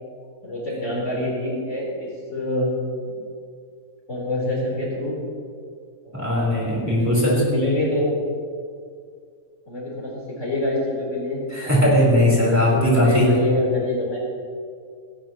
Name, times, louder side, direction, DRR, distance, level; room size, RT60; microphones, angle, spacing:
voice 1, 0.4-2.7 3.1-3.2 4.1-5.2 6.0-6.4 7.0-8.1 9.7-11.8 12.4-14.2, left 1 dB, 55° left, -5 dB, 4.4 m, -26 dB
voice 2, 6.1-7.3 11.5-13.3, left 1 dB, 10° right, -6 dB, 4.1 m, -18 dB
17.5 x 17.0 x 3.1 m, 2.3 s
omnidirectional pair, 1.5 m